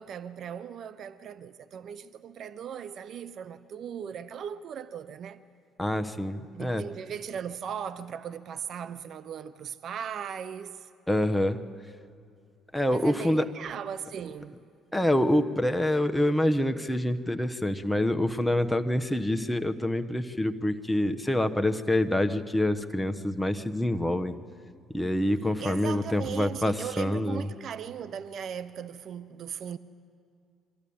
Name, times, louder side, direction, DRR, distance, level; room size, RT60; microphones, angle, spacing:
voice 1, 0.0-5.4 6.5-10.9 12.9-14.6 25.6-29.8, right 8 dB, 60° right, 0.6 m, -38 dB
voice 2, 5.8-6.8 11.1-11.7 12.7-13.5 14.9-24.4 24.9-27.4, left 1 dB, 5° left, 1.1 m, -26 dB
23.5 x 14.0 x 8.7 m
supercardioid pair, 70°, 0 cm